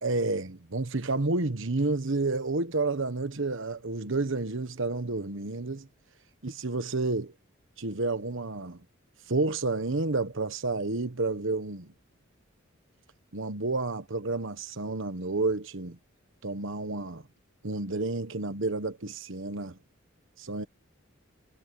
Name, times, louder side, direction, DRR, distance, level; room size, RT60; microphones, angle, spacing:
voice 1, 0.0-5.9 6.4-7.3 7.8-8.8 9.3-11.9 13.3-16.0 16.4-17.2 17.6-19.8 20.4-20.7, right 3 dB, 65° right, 1.3 m, -30 dB
head